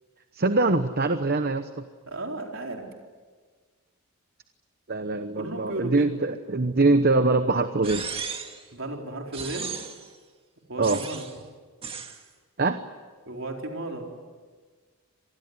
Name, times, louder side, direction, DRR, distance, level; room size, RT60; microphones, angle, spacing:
voice 1, 0.3-1.8 4.9-8.0 10.8-11.0 12.6-12.8, right 3 dB, 45° right, 9 dB, 0.9 m, -23 dB
voice 2, 2.1-2.9 5.3-6.1 8.7-9.7 10.7-11.2 13.3-14.1, right 2 dB, 60° right, 1 dB, 4.3 m, -34 dB
sound 1, 7.8-8.6 9.3-10.1 10.8-11.4 11.8-12.2, right 6 dB, 25° right, 1.9 m, -35 dB
26.5 x 20.0 x 9.6 m, 1.5 s
head